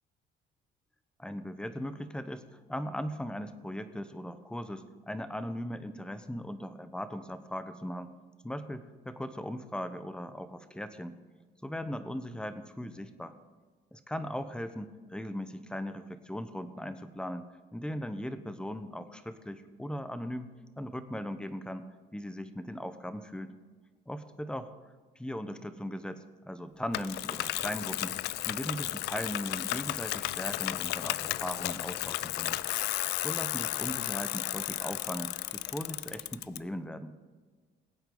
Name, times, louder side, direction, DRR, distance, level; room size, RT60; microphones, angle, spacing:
voice 1, 1.2-2.4 2.7-8.1 8.4-11.2 11.6-13.3 13.9-17.5 17.7-21.9 22.1-23.5 24.1-24.7 25.2-28.2 28.5-32.6 33.2-37.1, equal, 5° left, 10 dB, 0.9 m, -38 dB
Bicycle, 26.9-36.6, left 16 dB, 80° left, 0.4 m, -34 dB
20.5 x 8.6 x 3.9 m, 1.4 s
cardioid pair, 110°, 17 cm